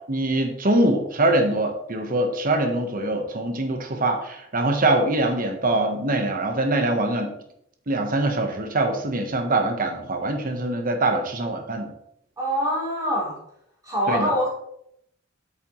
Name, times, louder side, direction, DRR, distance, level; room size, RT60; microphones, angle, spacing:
voice 1, 0.1-7.3 7.9-11.9 14.1-14.3, right 2 dB, 45° right, 5 dB, 1.2 m, -23 dB
voice 2, 12.4-13.4 13.8-14.5, equal, 20° right, -5 dB, 3.6 m, -24 dB
8.6 x 6.8 x 3.2 m, 0.74 s
head